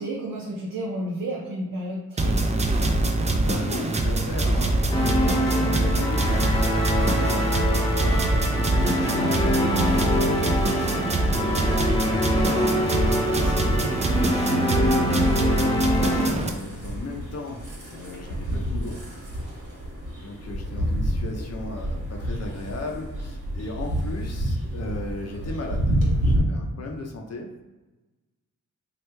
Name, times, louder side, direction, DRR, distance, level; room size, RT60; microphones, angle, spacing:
voice 1, 0.0-2.6 11.2-11.6, right 1 dB, 85° right, -2 dB, 0.6 m, -32 dB
sound 1, 2.2-16.5, right 2 dB, 20° right, 0.4 m, -24 dB
voice 2, 3.4-10.1 11.3-14.1 15.3-19.0 20.2-27.5, left 2 dB, 50° left, 1 dB, 0.5 m, -36 dB
sound 2, 4.9-16.3, equal, 15° left, 0.8 m, -25 dB
sound 3, 14.0-26.4, right 1 dB, 65° right, 1.2 m, -30 dB
3.1 x 2.3 x 3.2 m, 1.1 s
cardioid pair, 65°, 33 cm